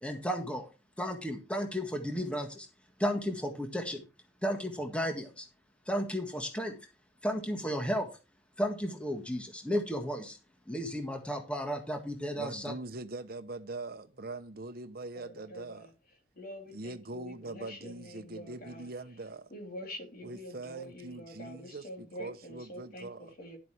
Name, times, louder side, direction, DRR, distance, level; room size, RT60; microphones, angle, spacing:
voice 1, 0.0-0.7 1.0-2.7 3.0-4.0 4.4-5.5 5.8-6.8 7.2-8.1 8.6-10.4 10.7-12.7, equal, 5° left, 1.7 m, -33 dB
voice 2, 12.4-15.9 16.7-19.5 20.2-23.3, right 2 dB, 55° right, 0.9 m, -42 dB
voice 3, 15.1-15.9 16.3-18.9 19.5-23.6, equal, 50° left, 3.9 m, -46 dB
12.0 x 8.2 x 3.4 m
head